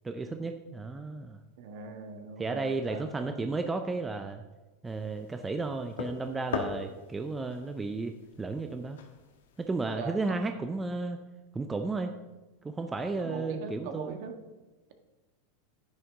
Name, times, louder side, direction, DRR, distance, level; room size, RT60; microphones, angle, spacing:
voice 1, 0.0-1.4 2.4-4.4 4.8-9.0 9.6-11.2 11.5-12.1 12.6-14.2, right 3 dB, 15° right, 6 dB, 0.6 m, -33 dB
voice 2, 1.6-3.4 10.0-10.2 13.2-14.3, right 5 dB, 65° right, 5 dB, 1.6 m, -41 dB
sound 1, 4.8-9.9, left 6 dB, 90° left, 1.5 m, -41 dB
10.0 x 9.9 x 3.8 m, 1.1 s
supercardioid pair, 140°, 0 cm